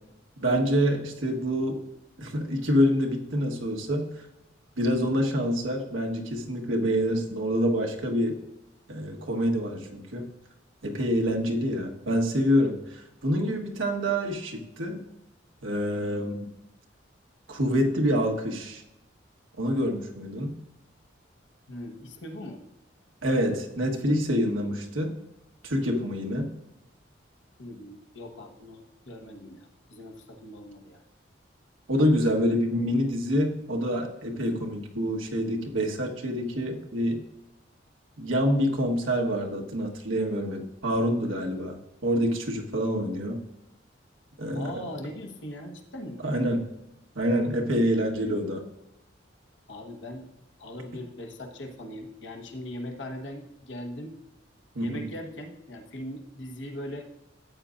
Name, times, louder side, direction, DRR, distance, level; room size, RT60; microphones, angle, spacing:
voice 1, 0.4-1.8 2.2-4.1 4.8-8.4 8.9-10.3 10.8-15.0 15.6-16.5 17.5-18.8 19.6-20.5 23.2-25.2 25.6-26.5 31.9-37.2 38.2-43.4 44.4-44.7 46.2-46.6 47.1-48.6 54.7-55.0, equal, 90° right, 1 dB, 1.4 m, -26 dB
voice 2, 21.7-22.6 27.6-31.0 44.5-46.2 49.7-50.3 50.6-54.1 54.8-57.1, left 1 dB, 70° left, 3 dB, 1.2 m, -40 dB
13.0 x 8.4 x 2.5 m, 0.91 s
head